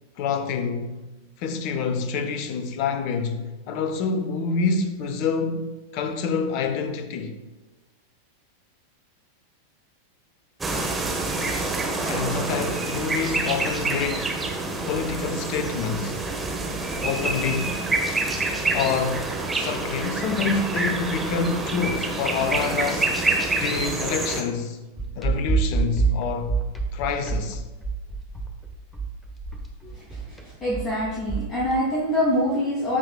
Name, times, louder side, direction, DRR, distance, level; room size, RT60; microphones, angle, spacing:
voice 1, 0.2-7.4 12.0-14.4 14.8-16.2 17.0-17.9 18.7-23.2 23.6-24.8 25.1-26.6 26.9-27.6, left 5 dB, 45° left, 0.8 m, -27 dB
sound 1, 10.6-24.4, right 3 dB, 10° right, 1.3 m, -27 dB
sound 2, 25.0-31.8, right 5 dB, 10° left, 1.2 m, -27 dB
voice 2, 30.6-33.0, equal, 25° left, 2.7 m, -24 dB
13.5 x 5.9 x 2.3 m
figure-of-eight pair, 90°, 0 cm